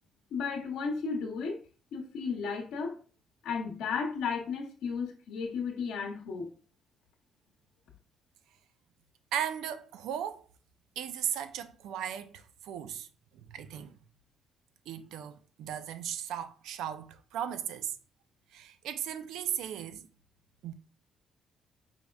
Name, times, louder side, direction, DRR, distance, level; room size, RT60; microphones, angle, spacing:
voice 1, 0.3-1.6 1.9-3.0 3.4-6.5, left 5 dB, 85° left, 0.8 m, -34 dB
voice 2, 9.3-10.5 11.0-13.1 13.3-14.0 14.9-18.0 18.5-20.1 20.6-20.7, right 9 dB, 90° right, 0.4 m, -37 dB
5.2 x 3.5 x 2.3 m
cardioid pair, 90°, 0 cm